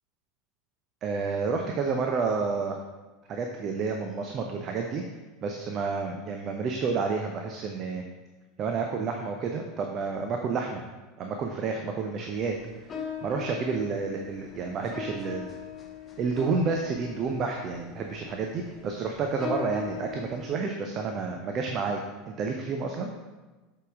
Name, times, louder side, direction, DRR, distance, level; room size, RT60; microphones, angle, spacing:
voice 1, 1.0-2.8 3.3-5.0 5.4-8.0 8.6-10.8 11.2-12.5 13.2-15.5 16.2-23.1, right 4 dB, 35° right, 3 dB, 0.6 m, -30 dB
sound 1, 12.3-20.5, left 6 dB, 25° left, 0.8 m, -40 dB
6.7 x 5.0 x 3.6 m, 1.2 s
figure-of-eight pair, 80°, 0 cm